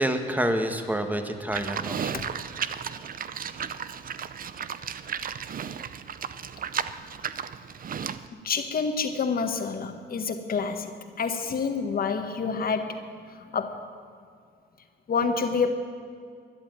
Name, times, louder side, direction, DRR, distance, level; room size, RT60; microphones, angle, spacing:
voice 1, 0.0-2.3, right 1 dB, 10° right, 6 dB, 1.6 m, -28 dB
Livestock farm animals working animals, 1.5-8.3, right 7 dB, 45° right, 0.7 m, -34 dB
voice 2, 8.4-13.8 15.1-15.7, left 5 dB, 45° left, 7 dB, 1.6 m, -28 dB
13.5 x 11.0 x 9.3 m, 2.3 s
cardioid pair, 90°, 20 cm